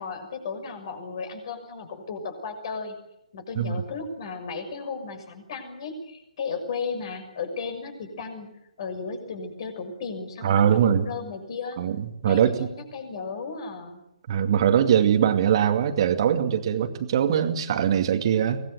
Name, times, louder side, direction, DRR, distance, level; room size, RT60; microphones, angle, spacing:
voice 1, 0.0-3.0 3.3-8.5 8.8-11.8 12.2-14.0, left 5 dB, 45° left, 7 dB, 6.3 m, -35 dB
voice 2, 10.4-11.0 11.8-12.7 14.3-18.6, right 9 dB, 45° right, 6 dB, 2.4 m, -22 dB
23.5 x 20.0 x 8.0 m, 0.84 s
figure-of-eight pair, 135°, 4 cm